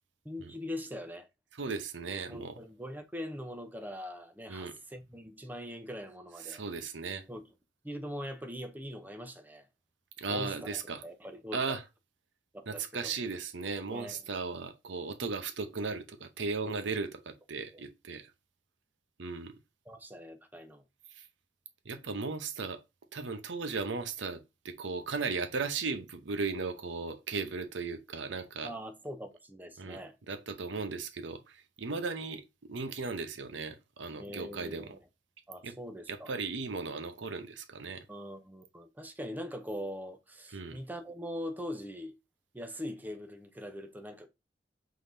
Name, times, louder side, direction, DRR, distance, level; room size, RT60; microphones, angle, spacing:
voice 1, 0.2-1.3 2.3-6.6 7.3-7.5 7.8-9.7 10.3-11.8 12.5-13.2 13.9-14.2 16.6-16.8 17.7-17.8 19.9-20.8 28.6-30.2 34.1-35.0 35.5-36.3 38.1-42.2 42.5-44.3, equal, 10° right, 0.6 m, -42 dB
voice 2, 1.6-2.5 4.5-4.7 6.4-7.2 10.2-11.0 11.5-11.8 12.7-18.3 19.2-19.5 21.2-21.3 21.8-22.8 23.1-24.4 24.6-28.7 29.8-30.0 30.3-32.4 32.7-34.9 35.6-35.7 36.1-38.0 40.5-40.8, right 4 dB, 90° right, 0.8 m, -36 dB
5.1 x 3.9 x 2.7 m
head